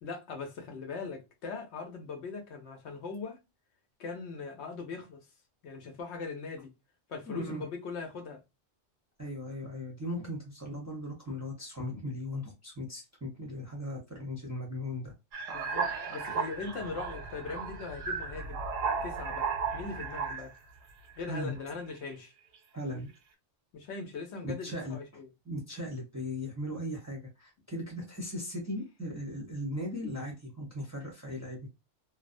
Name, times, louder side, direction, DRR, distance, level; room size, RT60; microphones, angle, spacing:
voice 1, 0.0-3.4 4.0-5.2 5.6-6.7 7.1-8.4 15.5-18.6 19.0-20.5 21.2-22.3 23.7-25.3 27.9-28.0, left 4 dB, 70° left, 0.9 m, -40 dB
voice 2, 7.3-7.6 9.2-15.1 21.3-21.6 22.7-23.1 24.4-25.0 25.5-31.7, left 1 dB, 20° right, 0.6 m, -38 dB
sound 1, 15.3-20.6 21.2-21.6, right 5 dB, 85° right, 1.0 m, -35 dB
2.6 x 2.1 x 2.5 m
omnidirectional pair, 1.2 m